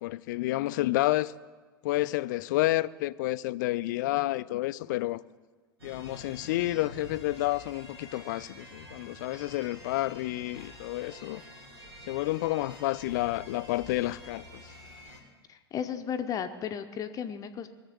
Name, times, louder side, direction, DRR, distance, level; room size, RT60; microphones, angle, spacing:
voice 1, 0.0-1.3 1.8-5.2 5.8-11.4 12.1-14.6, left 17 dB, 50° left, 0.4 m, -30 dB
sound 1, 5.8-15.2, left 1 dB, 75° right, 2.7 m, -48 dB
voice 2, 15.5-17.7, left 8 dB, 25° left, 0.7 m, -34 dB
20.0 x 7.2 x 7.0 m
figure-of-eight pair, 85°, 13 cm